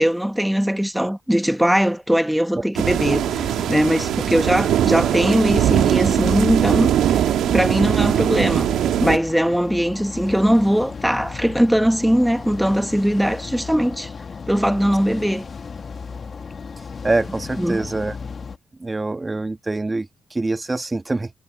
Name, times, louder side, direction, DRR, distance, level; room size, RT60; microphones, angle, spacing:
voice 1, 0.0-8.7 9.0-14.1 14.5-15.5 17.6-17.8, equal, 5° right, 1.6 m, -20 dB
sound 1, 2.7-9.2, right 11 dB, 75° right, 2.4 m, -20 dB
sound 2, 3.1-18.6, left 5 dB, 45° left, 2.5 m, -35 dB
voice 2, 17.0-18.2 18.8-21.3, right 2 dB, 25° right, 1.7 m, -24 dB
hypercardioid pair, 45°, 0 cm